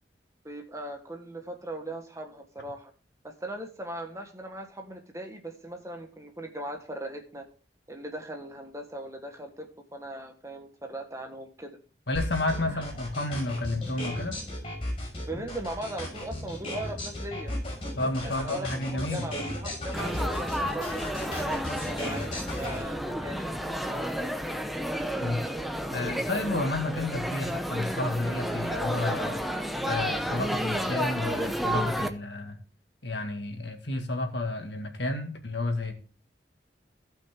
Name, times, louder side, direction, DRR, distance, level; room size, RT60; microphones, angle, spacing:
voice 1, 0.4-2.9 3.2-7.5 7.9-11.8 12.7-12.8 15.3-17.5 18.2-24.3, right 1 dB, 15° right, 4 dB, 1.4 m, -39 dB
voice 2, 12.1-14.4 18.0-19.3 25.2-25.4 25.9-29.4 29.8-32.6 33.0-35.9, left 2 dB, 70° left, 4 dB, 1.9 m, -31 dB
sound 1, 12.1-22.8, left 1 dB, 30° left, 5.6 m, -35 dB
Laughter / Chatter / Crowd, 19.9-32.1, equal, ahead, 0.8 m, -31 dB
15.5 x 5.7 x 3.6 m, 0.38 s
head